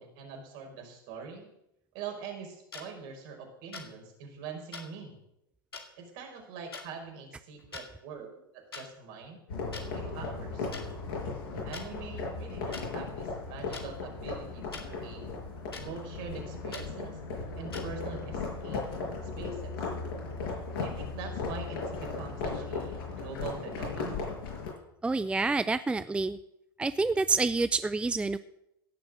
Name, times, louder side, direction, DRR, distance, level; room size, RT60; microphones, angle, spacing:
voice 1, 0.0-1.5 1.9-5.2 6.0-9.4 9.8-10.7 11.6-15.2 15.8-17.2 17.6-18.9 19.4-19.9 20.7-24.3, right 5 dB, 60° right, 2 dB, 4.9 m, -43 dB
sound 1, 2.7-2.8 3.7-3.9 4.7-4.8 5.7-5.8 6.7-6.9 7.6-7.9 8.7-8.8 9.7-9.8 10.7-10.8 11.7-11.8 12.7-12.8 13.7-13.9 14.7-14.9 15.7-15.8 16.7-16.9 17.7-17.8, left 4 dB, 85° left, 2.2 m, -41 dB
sound 2, 9.5-24.7, left 4 dB, 70° left, 6.8 m, -36 dB
voice 2, 25.0-26.4 26.8-28.4, right 3 dB, 10° right, 13 dB, 0.5 m, -28 dB
16.5 x 7.1 x 7.6 m, 0.83 s
hypercardioid pair, 85°, 12 cm